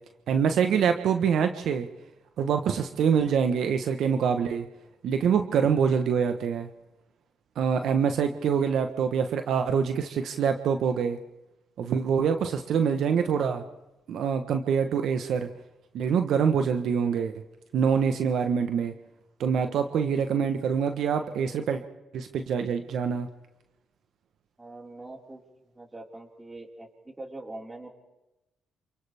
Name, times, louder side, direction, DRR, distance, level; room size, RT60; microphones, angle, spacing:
voice 1, 0.3-1.9 2.4-4.7 5.0-6.7 7.6-11.2 11.8-13.6 14.1-15.5 15.9-17.3 17.7-18.9 19.4-21.8 22.1-23.3, right 7 dB, 70° right, 7 dB, 1.1 m, -25 dB
voice 2, 24.6-25.4 25.8-27.9, right 2 dB, 20° right, -1 dB, 4.8 m, -43 dB
29.0 x 28.0 x 3.5 m, 1.0 s
cardioid pair, 75°, 0 cm